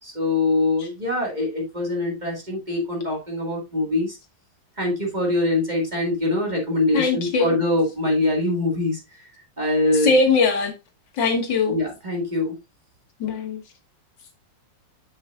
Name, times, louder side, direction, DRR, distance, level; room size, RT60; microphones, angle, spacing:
voice 1, 0.0-4.2 4.8-9.0 9.3-10.2 11.7-12.6, left 2 dB, 25° right, 2.0 m, -23 dB
voice 2, 6.9-7.5 10.0-10.7 11.2-11.8 13.2-13.6, left 4 dB, 75° left, 2.0 m, -20 dB
7.1 x 6.8 x 2.5 m
omnidirectional pair, 2.0 m